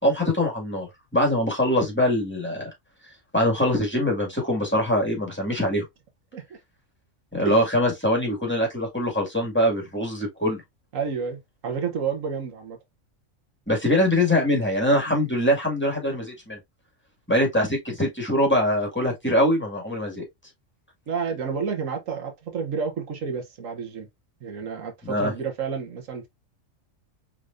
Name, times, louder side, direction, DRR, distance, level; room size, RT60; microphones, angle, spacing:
voice 1, 0.0-2.7 3.3-5.8 7.3-10.6 13.7-16.6 17.3-20.2 25.0-25.3, left 1 dB, 10° left, 2.0 m, -23 dB
voice 2, 10.9-12.8 21.1-24.1 24.4-26.3, right 6 dB, 80° right, 1.4 m, -30 dB
5.0 x 3.6 x 2.6 m
omnidirectional pair, 1.3 m